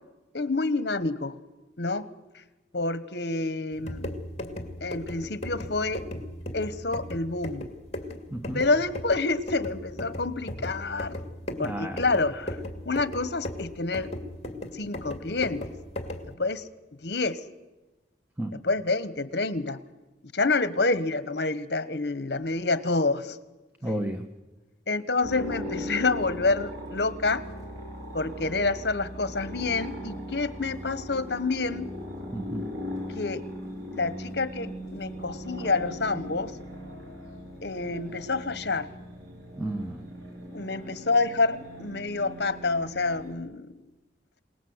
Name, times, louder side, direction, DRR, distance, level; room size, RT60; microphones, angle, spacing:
voice 1, 0.3-1.4 1.8-2.1 2.7-4.2 4.8-6.0 6.5-7.7 8.5-11.2 11.6-12.6 12.8-14.1 14.7-15.7 16.2-16.7 17.0-17.4 18.5-19.8 20.3-23.4 24.9-27.4 28.1-31.9 33.1-33.4 33.9-36.6 37.6-38.9 40.5-43.8, left 3 dB, 65° left, 14 dB, 1.2 m, -28 dB
sound 1, 3.7-16.3, left 1 dB, 35° left, 2.4 m, -37 dB
voice 2, 8.3-8.6 11.6-12.0 18.4-18.5 23.8-24.2 32.3-32.7 39.6-40.0, right 1 dB, 10° right, 6 dB, 1.1 m, -32 dB
sound 2, 25.2-43.3, equal, 75° right, 7.0 m, -39 dB
27.0 x 18.5 x 8.0 m, 1.1 s
head